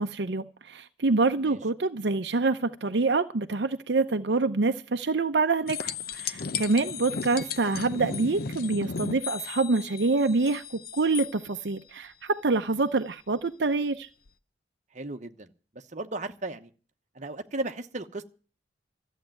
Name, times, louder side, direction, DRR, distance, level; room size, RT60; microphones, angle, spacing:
voice 1, 0.0-10.6 10.9-14.1, right 3 dB, 70° right, 0.7 m, -26 dB
sound 1, 5.7-11.3 14.3-14.4, left 6 dB, 55° left, 0.7 m, -35 dB
voice 2, 14.9-15.5 15.9-16.7 17.1-18.2, right 2 dB, 45° right, 1.1 m, -35 dB
14.0 x 8.2 x 9.0 m
head